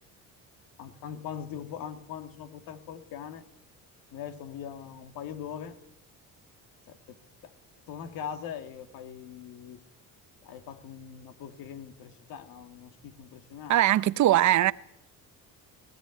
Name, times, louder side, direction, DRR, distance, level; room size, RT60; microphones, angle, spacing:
voice 1, 0.8-3.4 4.1-5.8 6.9-7.2 7.4-7.5 7.9-9.8 10.4-13.8, left 8 dB, 80° left, 2.2 m, -41 dB
voice 2, 13.7-14.7, right 13 dB, 55° right, 0.8 m, -21 dB
18.5 x 17.0 x 9.8 m
cardioid pair, 115°, 34 cm